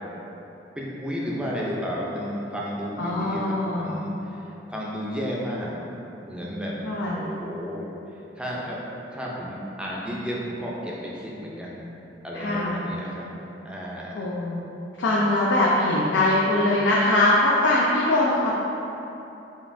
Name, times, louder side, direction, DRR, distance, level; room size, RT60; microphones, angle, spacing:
voice 1, 0.8-5.8 6.2-6.8 7.1-7.9 8.4-8.8 9.1-11.8 12.2-13.3 13.6-14.2, equal, 5° right, -5 dB, 0.4 m, -32 dB
voice 2, 3.0-4.0 6.8-7.2 12.3-12.8 14.1-14.6 15.0-18.5, left 1 dB, 80° left, -5 dB, 0.4 m, -22 dB
5.2 x 2.5 x 2.5 m, 3.0 s
head